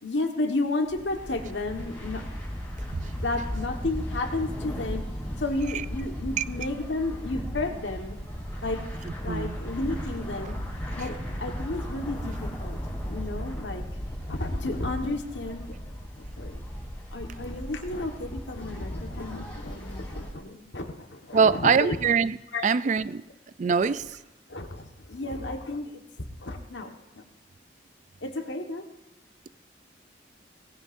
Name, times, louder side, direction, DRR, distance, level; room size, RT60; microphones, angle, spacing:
voice 1, 0.0-2.2 3.2-5.1 5.4-8.2 8.6-8.8 9.2-10.6 11.0-12.8 13.1-13.8 14.3-15.7 16.2-16.6 17.1-22.0 22.5-22.7 23.8-23.9 24.5-26.0 26.4-27.2 28.2-28.8, left 2 dB, 80° left, 1.5 m, -32 dB
sound 1, 0.9-20.3, equal, 10° left, 3.2 m, -36 dB
voice 2, 21.3-22.4 22.6-23.2 23.6-24.1, right 6 dB, 40° right, 0.3 m, -23 dB
18.0 x 16.0 x 2.6 m
head